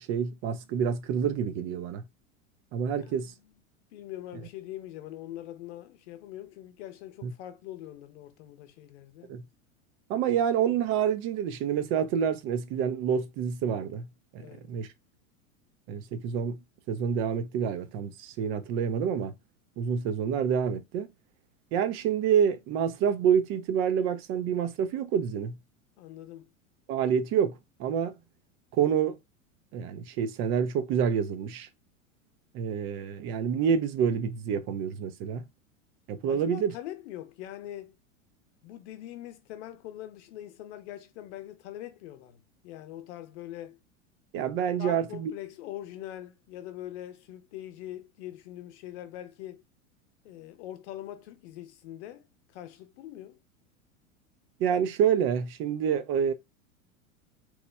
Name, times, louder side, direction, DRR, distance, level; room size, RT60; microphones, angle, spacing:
voice 1, 0.1-2.0 2.7-3.3 7.2-7.3 9.3-9.4 10.1-14.1 14.3-14.4 14.7-14.9 15.9-16.6 16.9-19.3 19.8-21.1 21.7-25.6 26.9-28.1 28.7-29.2 29.7-31.7 32.5-35.4 36.1-36.7 44.3-45.3 54.6-56.3, right 8 dB, 30° right, 0.4 m, -27 dB
voice 2, 3.0-3.5 3.9-9.3 14.4-14.6 26.0-26.5 36.3-37.9 38.6-43.8 44.8-49.6 50.2-53.4, left 13 dB, 55° left, 0.7 m, -43 dB
3.0 x 2.1 x 3.2 m
hypercardioid pair, 90°, 41 cm